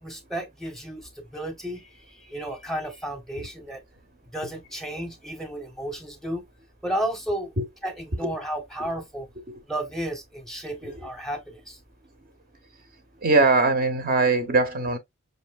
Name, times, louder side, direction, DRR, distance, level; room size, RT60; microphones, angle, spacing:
voice 1, 0.0-3.8 4.3-6.4 6.8-7.5 7.8-9.3 9.7-11.8, right 1 dB, ahead, 0.7 m, -33 dB
voice 2, 13.2-15.0, right 3 dB, 45° right, 0.6 m, -22 dB
5.2 x 2.6 x 2.2 m
head